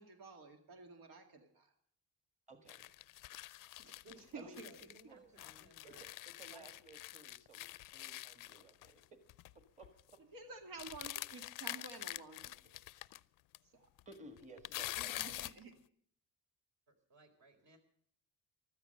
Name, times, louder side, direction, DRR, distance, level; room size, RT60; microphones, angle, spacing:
voice 1, 0.0-1.7 3.8-4.0 4.3-4.7 10.3-13.0 13.7-13.9 15.0-15.7, right 3 dB, 85° right, 5 dB, 2.2 m, -52 dB
voice 2, 2.5-2.9 4.3-5.3 5.8-6.1 6.4-9.0 9.8-10.2 14.0-15.4, right 2 dB, 20° right, 7 dB, 1.5 m, -57 dB
sound 1, 2.7-5.0 5.4-9.0 9.3-9.5 9.8-10.1 10.8-13.2 13.5-13.6 14.0-15.6, left 17 dB, 75° left, 0.5 m, -46 dB
voice 3, 4.0-6.0 6.5-6.7 16.9-17.8, right 2 dB, 60° right, 5 dB, 4.0 m, -61 dB
15.0 x 13.0 x 6.5 m, 0.62 s
cardioid pair, 145°, 33 cm